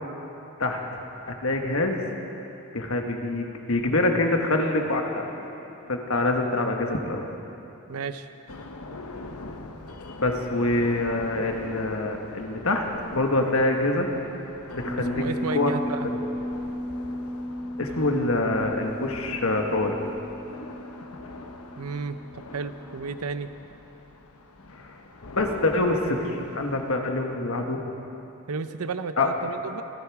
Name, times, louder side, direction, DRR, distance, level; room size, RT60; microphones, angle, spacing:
voice 1, 1.3-2.0 2.7-5.3 5.9-7.2 10.2-12.9 13.1-14.1 14.7-15.2 15.5-15.7 17.8-20.0 25.3-27.8 29.2-29.3, left 2 dB, 70° left, 3 dB, 1.5 m, -25 dB
voice 2, 7.9-8.3 15.1-16.0 21.8-23.5 28.5-29.8, right 4 dB, 90° right, 11 dB, 0.7 m, -33 dB
sound 1, 8.5-27.0, left 2 dB, 90° left, 1.1 m, -43 dB
sound 2, 14.8-23.1 23.5-23.6, equal, 5° left, 0.7 m, -35 dB
26.5 x 10.5 x 4.9 m, 3.0 s
head